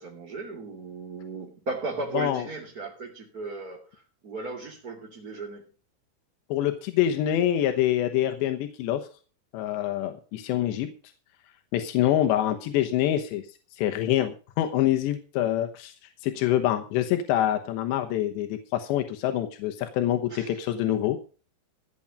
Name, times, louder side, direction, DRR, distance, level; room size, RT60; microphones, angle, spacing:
voice 1, 0.0-5.7 20.3-20.7, right 3 dB, 25° right, -4 dB, 2.6 m, -36 dB
voice 2, 2.1-2.4 6.5-9.0 9.5-10.9 11.7-13.5 13.8-15.9 16.2-21.2, left 12 dB, 90° left, 6 dB, 3.3 m, -25 dB
16.5 x 7.4 x 5.3 m, 0.36 s
omnidirectional pair, 4.9 m